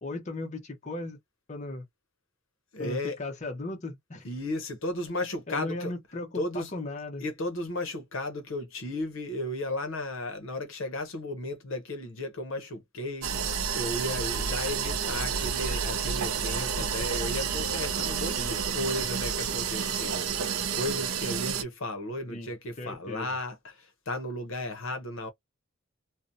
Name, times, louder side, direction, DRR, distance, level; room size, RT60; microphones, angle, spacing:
voice 1, 0.0-1.2 1.5-1.9 2.8-4.3 5.5-7.2 16.8-17.0 18.4-18.6 22.3-22.5 22.8-23.3, left 2 dB, 35° left, 0.6 m, -37 dB
voice 2, 2.7-3.2 4.2-5.9 6.3-6.7 7.2-25.3, left 1 dB, 70° left, 0.7 m, -34 dB
sound 1, 13.2-21.6, right 6 dB, 85° right, 0.5 m, -30 dB
2.7 x 2.0 x 2.5 m
head